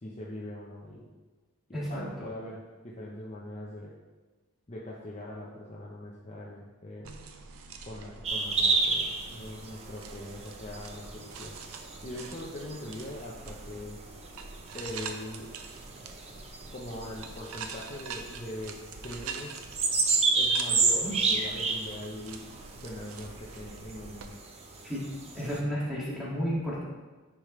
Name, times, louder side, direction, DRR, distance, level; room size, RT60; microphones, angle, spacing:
voice 1, 0.0-1.1 1.7-4.0 4.7-7.1 7.8-11.5 12.0-14.0 14.7-15.5 16.7-19.6 20.3-22.5 22.7-24.4, left 1 dB, 30° left, -4 dB, 0.9 m, -41 dB
voice 2, 1.7-2.3 21.0-21.2 24.8-25.1 25.3-26.8, equal, ahead, -7 dB, 2.1 m, -32 dB
sound 1, 7.0-24.3, right 5 dB, 70° right, 0.7 m, -45 dB
sound 2, 8.2-25.6, right 3 dB, 30° right, 0.7 m, -32 dB
10.0 x 5.1 x 3.3 m, 1.3 s
head